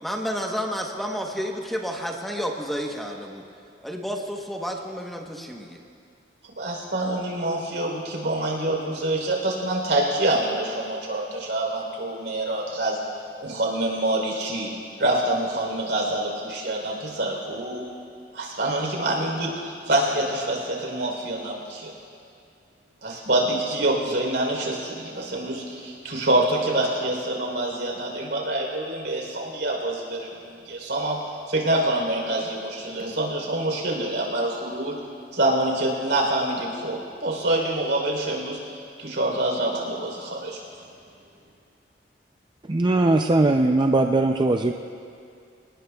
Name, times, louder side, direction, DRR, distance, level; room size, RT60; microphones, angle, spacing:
voice 1, 0.0-3.4 3.8-5.8, equal, ahead, 0 dB, 1.0 m, -30 dB
voice 2, 6.6-13.0 13.4-14.7 15.0-17.8 18.3-21.9 23.0-35.0 35.3-40.6, right 1 dB, 75° right, 0 dB, 3.6 m, -26 dB
voice 3, 42.7-44.7, right 2 dB, 25° right, 5 dB, 0.4 m, -20 dB
25.5 x 19.5 x 2.3 m, 2.4 s
head